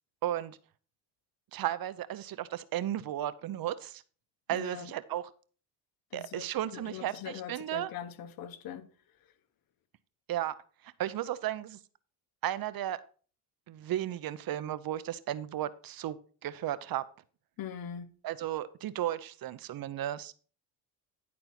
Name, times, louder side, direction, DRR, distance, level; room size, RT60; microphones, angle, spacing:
voice 1, 0.2-0.6 1.5-4.0 4.5-5.3 6.1-7.9 10.3-10.5 10.8-11.8 12.4-13.0 13.7-16.2 16.4-17.0 18.2-20.3, right 12 dB, 50° right, 0.8 m, -34 dB
voice 2, 4.5-4.9 6.1-6.5 6.7-8.9 17.6-18.1, left 9 dB, 50° left, 1.1 m, -41 dB
10.5 x 4.3 x 5.8 m
cardioid pair, 95°, 44 cm